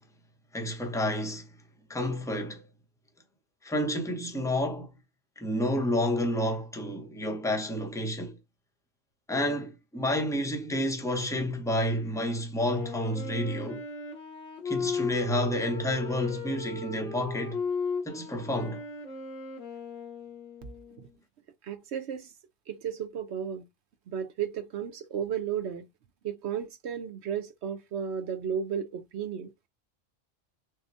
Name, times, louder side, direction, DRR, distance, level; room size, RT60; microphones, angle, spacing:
voice 1, 0.5-1.5 1.9-2.6 3.6-4.9 5.4-8.4 9.3-13.8 14.6-17.6 18.1-18.8, left 1 dB, 5° left, 0.7 m, -30 dB
Wind instrument woodwind instrument, 12.6-21.1, left 4 dB, 75° left, 1.4 m, -36 dB
voice 2, 21.6-22.3 22.7-23.7 24.1-25.9 26.2-29.5, right 8 dB, 70° right, 0.9 m, -34 dB
6.3 x 2.1 x 2.6 m
omnidirectional pair, 1.2 m